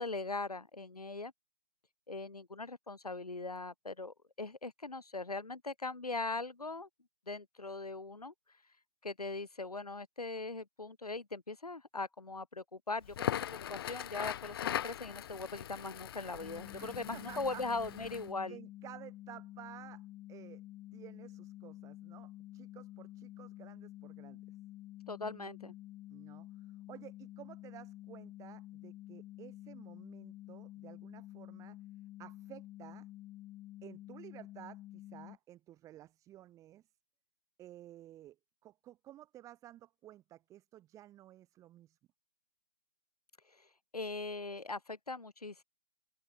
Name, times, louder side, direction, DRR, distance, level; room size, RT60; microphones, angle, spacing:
voice 1, 0.0-1.3 2.1-6.9 7.3-8.3 9.0-18.6 25.1-25.7 43.5-43.7 43.9-45.6, left 3 dB, 85° left, 1.0 m, -40 dB
Crackle, 13.0-18.3, left 11 dB, 40° left, 1.7 m, -40 dB
sound 1, 16.4-35.4, left 15 dB, 15° left, 2.0 m, -50 dB
voice 2, 16.8-17.6 18.5-20.6 20.9-24.4 26.1-26.5 26.9-31.8 32.2-33.1 33.8-36.8 37.6-38.4 38.6-42.0, right 13 dB, 15° right, 7.4 m, -53 dB
open air
figure-of-eight pair, 130°, 19 cm